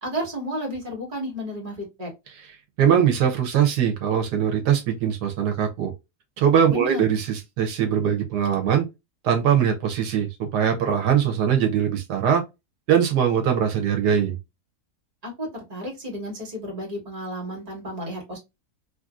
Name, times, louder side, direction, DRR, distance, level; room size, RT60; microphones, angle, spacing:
voice 1, 0.0-2.1 6.7-7.0 15.2-18.4, equal, 25° right, 1.3 m, -32 dB
voice 2, 2.8-5.9 6.4-8.9 9.2-12.4 12.9-14.4, right 8 dB, 80° right, 1.3 m, -21 dB
3.2 x 2.6 x 2.3 m
omnidirectional pair, 1.7 m